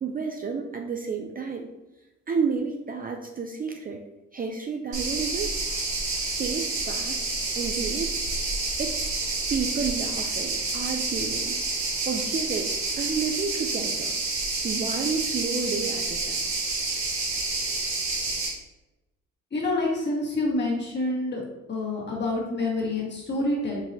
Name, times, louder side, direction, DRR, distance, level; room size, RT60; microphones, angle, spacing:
voice 1, 0.0-1.7 2.3-4.0 4.3-5.6 6.4-9.1 9.5-11.6 12.0-14.1 14.6-16.5, right 5 dB, 30° right, 3 dB, 0.4 m, -31 dB
sound 1, 4.9-18.5, right 3 dB, 70° right, 1.5 m, -29 dB
voice 2, 19.5-21.4 21.7-23.8, left 2 dB, 35° left, -3 dB, 1.6 m, -27 dB
4.7 x 4.0 x 2.8 m, 1.0 s
cardioid pair, 100°, 30 cm